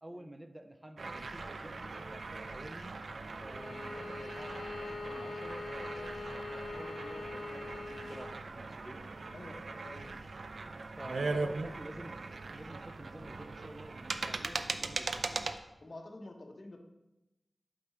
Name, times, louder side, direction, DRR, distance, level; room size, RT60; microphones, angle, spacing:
voice 1, 0.0-2.9 3.4-9.0 11.0-12.2 12.5-15.5, right 1 dB, 20° right, 6 dB, 0.5 m, -50 dB
sound 1, 1.0-15.6, right 3 dB, 75° right, 0.4 m, -40 dB
Bowed string instrument, 3.5-8.4, left 3 dB, 85° left, 0.4 m, -43 dB
voice 2, 9.0-10.2 11.1-11.4 15.8-16.8, left 2 dB, 50° left, 3 dB, 1.0 m, -48 dB
7.6 x 4.9 x 4.3 m, 0.96 s
wide cardioid pair, 90°, 0 cm